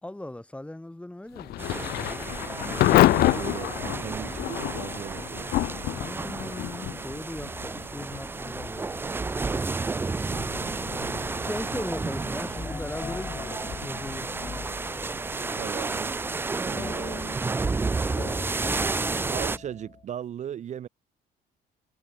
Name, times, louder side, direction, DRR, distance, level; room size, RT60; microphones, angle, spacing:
voice 1, 0.0-2.3 5.9-8.9 11.4-14.6, left 1 dB, 5° left, 1.0 m, -38 dB
Thunder / Rain, 1.3-18.1, left 16 dB, 65° left, 0.6 m, -30 dB
sound 1, 1.6-19.6, right 3 dB, 15° right, 0.3 m, -31 dB
voice 2, 2.9-5.5 15.5-16.2 16.6-17.4 19.3-20.9, right 10 dB, 45° right, 0.6 m, -37 dB
sound 2, 12.6-15.5 16.8-20.1, left 5 dB, 25° left, 1.9 m, -40 dB
cardioid pair, 110°, 17 cm